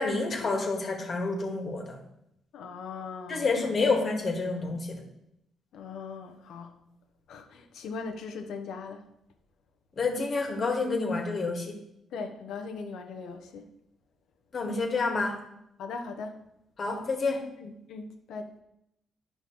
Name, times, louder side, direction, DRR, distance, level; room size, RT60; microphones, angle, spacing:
voice 1, 0.0-2.0 3.3-5.0 10.0-11.8 14.5-15.4 16.8-17.5, left 3 dB, 45° left, 3 dB, 1.6 m, -28 dB
voice 2, 2.5-3.5 3.8-3.9 5.7-6.7 7.3-9.1 12.1-13.7 15.8-16.3 17.6-18.6, left 4 dB, 80° left, 5 dB, 0.9 m, -39 dB
10.5 x 5.6 x 3.1 m, 0.80 s
cardioid pair, 90°, 0 cm